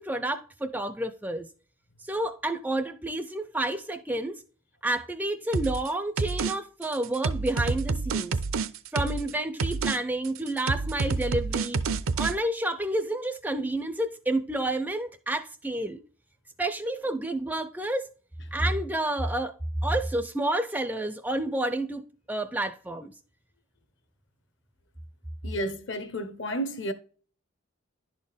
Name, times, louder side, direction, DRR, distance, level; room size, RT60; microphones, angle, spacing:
voice 1, 0.0-1.5 2.0-4.4 4.8-8.3 8.9-11.8 12.2-16.0 16.6-18.1 18.5-19.6 19.8-22.0 22.3-23.1, right 1 dB, 10° right, 0.4 m, -29 dB
sound 1, 5.5-5.9 6.2-6.5 6.8-9.3 9.6-10.0 10.2-12.3, right 4 dB, 80° right, 0.6 m, -28 dB
voice 2, 25.4-26.9, equal, 60° left, 0.8 m, -31 dB
11.0 x 4.3 x 3.4 m
head